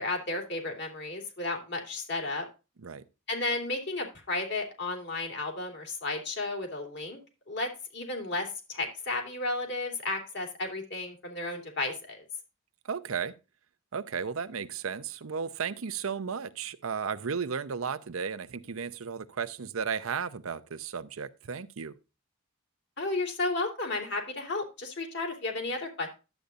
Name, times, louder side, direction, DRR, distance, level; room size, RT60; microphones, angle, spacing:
voice 1, 0.0-2.5 3.3-7.2 7.5-12.2 23.0-26.1, left 2 dB, 60° left, 3.0 m, -33 dB
voice 2, 12.8-13.3 13.9-21.9, right 6 dB, 90° right, 0.7 m, -34 dB
11.5 x 8.2 x 2.6 m
head